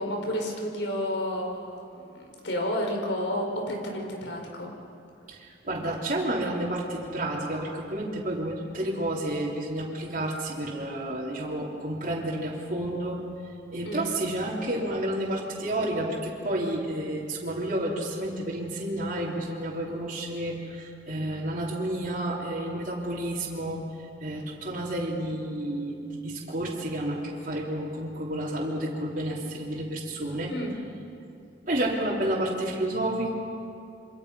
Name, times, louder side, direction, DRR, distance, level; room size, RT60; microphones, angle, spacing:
voice 1, 0.0-4.7 13.8-14.1 30.5-30.7, equal, 85° left, 1 dB, 5.1 m, -31 dB
voice 2, 5.3-13.2 13.7-23.8 24.2-30.5 31.7-33.3, right 1 dB, 45° right, -6 dB, 3.4 m, -30 dB
27.5 x 25.5 x 5.6 m, 2.5 s
head